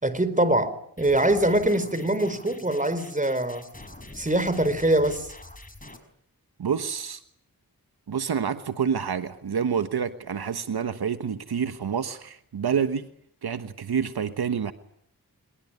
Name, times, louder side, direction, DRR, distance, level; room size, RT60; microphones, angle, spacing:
voice 1, 0.0-3.7 4.1-5.3, right 1 dB, 20° right, 4.2 m, -23 dB
sound 1, 1.0-6.0, left 2 dB, 20° left, 5.5 m, -45 dB
voice 2, 6.6-7.2 8.1-13.1 13.4-14.7, right 7 dB, 75° right, 1.3 m, -28 dB
25.5 x 22.0 x 9.8 m
cardioid pair, 50°, 38 cm